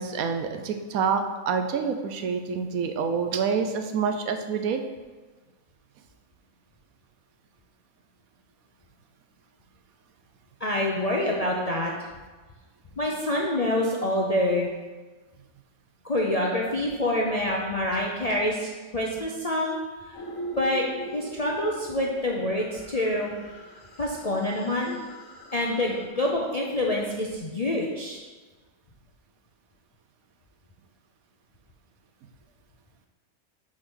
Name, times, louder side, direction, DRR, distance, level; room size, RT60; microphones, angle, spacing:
voice 1, 0.0-4.8, right 6 dB, 75° right, 6 dB, 1.1 m, -27 dB
voice 2, 10.6-11.9 13.0-14.7 16.0-19.8 20.1-20.2 20.6-20.8 21.1-23.3 24.0-25.0 25.5-28.2, left 1 dB, 45° left, -2 dB, 0.5 m, -26 dB
sound 1, 20.1-26.1, right 1 dB, 65° left, 1.4 m, -41 dB
6.2 x 3.8 x 6.2 m, 1.3 s
omnidirectional pair, 1.5 m